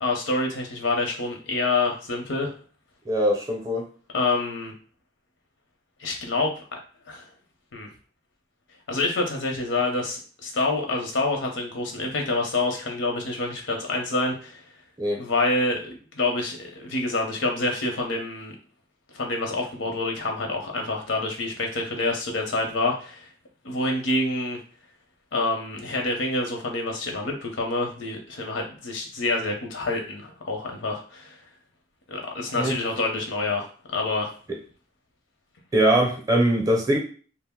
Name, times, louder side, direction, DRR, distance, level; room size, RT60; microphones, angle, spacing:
voice 1, 0.0-2.5 4.1-4.7 6.0-6.5 7.1-7.3 7.7-7.9 8.9-14.6 15.2-18.5 19.1-23.3 23.6-24.6 25.3-31.4 32.1-34.3, left 2 dB, 85° left, 2 dB, 0.7 m, -27 dB
voice 2, 3.1-3.9 15.0-15.2 32.6-32.8 35.7-37.0, right 1 dB, 20° right, 1 dB, 0.5 m, -22 dB
2.5 x 2.0 x 3.6 m, 0.41 s
head